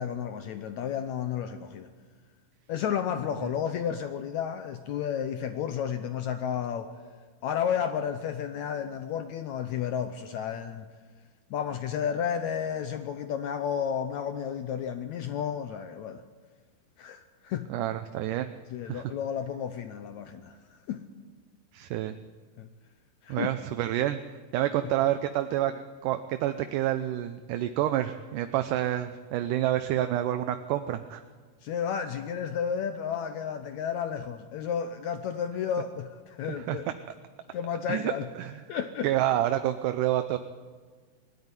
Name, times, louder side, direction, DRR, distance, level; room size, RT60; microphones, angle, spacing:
voice 1, 0.0-1.9 2.7-6.9 7.4-10.9 11.5-16.2 17.0-17.7 18.7-21.0 22.6-22.7 23.2-23.5 24.8-24.9 31.6-36.8 37.5-38.3 38.7-39.1, left 8 dB, 80° left, 9 dB, 1.6 m, -32 dB
voice 2, 17.7-18.5 18.9-19.1 21.7-22.2 23.3-24.2 24.5-31.2 36.5-36.8 37.9-38.1 38.4-38.5 39.0-40.4, right 12 dB, 75° right, 9 dB, 2.0 m, -28 dB
21.0 x 13.5 x 9.7 m, 1.5 s
omnidirectional pair, 4.3 m